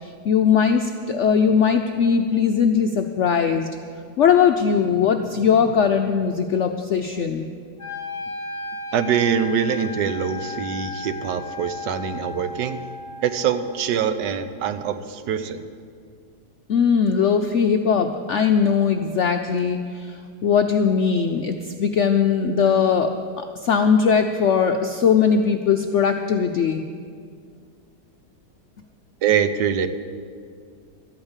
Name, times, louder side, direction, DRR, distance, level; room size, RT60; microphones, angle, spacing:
voice 1, 0.0-3.7 4.2-7.5 16.7-26.8, left 6 dB, 70° left, 5 dB, 0.6 m, -20 dB
Wind instrument woodwind instrument, 7.8-13.9, left 3 dB, 10° left, 2.6 m, -35 dB
voice 2, 8.9-12.8 13.2-15.7 29.2-29.9, right 8 dB, 85° right, 10 dB, 1.4 m, -24 dB
12.5 x 8.8 x 8.1 m, 2.1 s
omnidirectional pair, 1.9 m